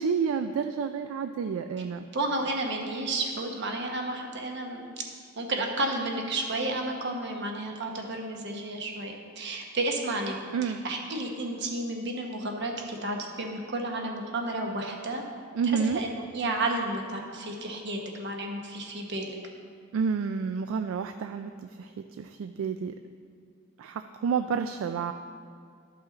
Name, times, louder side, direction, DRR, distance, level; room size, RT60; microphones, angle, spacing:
voice 1, 0.0-2.1 10.5-10.8 15.5-16.0 19.9-21.5 21.8-22.9 23.8-25.1, right 6 dB, 75° right, 8 dB, 0.3 m, -29 dB
voice 2, 2.1-4.9 5.4-15.2 15.6-19.4, right 2 dB, 60° right, 2 dB, 1.0 m, -32 dB
11.5 x 5.6 x 3.9 m, 2.2 s
head